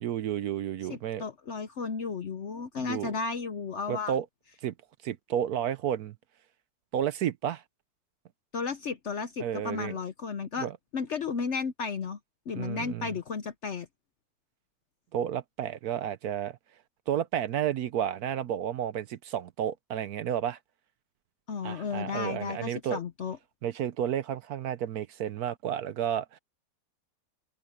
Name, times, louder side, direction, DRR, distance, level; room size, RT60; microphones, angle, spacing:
voice 1, 0.0-1.2 2.8-3.1 3.9-4.2 4.6-4.7 5.0-6.1 6.9-7.6 9.4-9.9 10.6-10.7 12.5-13.1 15.1-16.6 17.1-20.6 21.6-23.0 23.6-26.4, right 10 dB, 65° right, 1.1 m, -31 dB
voice 2, 0.9-4.1 8.5-10.7 10.9-12.2 12.5-13.9 21.5-23.4, left 5 dB, 55° left, 0.9 m, -33 dB
omnidirectional pair, 1.9 m